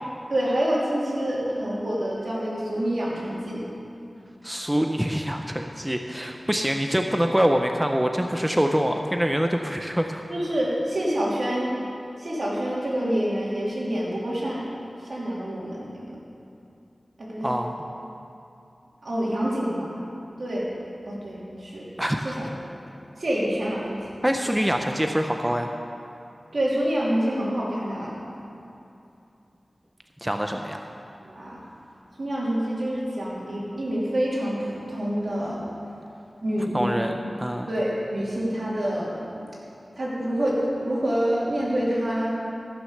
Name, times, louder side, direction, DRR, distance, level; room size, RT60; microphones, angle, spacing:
voice 1, 0.3-3.6 10.3-11.7 12.2-14.6 15.0-16.2 17.2-17.5 19.0-20.0 20.4-20.8 21.1-21.9 22.2-22.5 23.2-24.0 24.4-24.5 26.5-28.1 31.2-31.6 32.2-35.6 36.4-37.0 37.7-39.5 39.9-42.3, equal, 70° right, -6 dB, 3.1 m, -27 dB
voice 2, 4.4-10.2 17.4-17.8 22.0-22.3 24.2-25.7 30.2-30.8 36.7-37.1 37.4-37.7, equal, 10° right, 4 dB, 0.7 m, -25 dB
14.5 x 6.4 x 6.6 m, 2.7 s
wide cardioid pair, 50°, 0 cm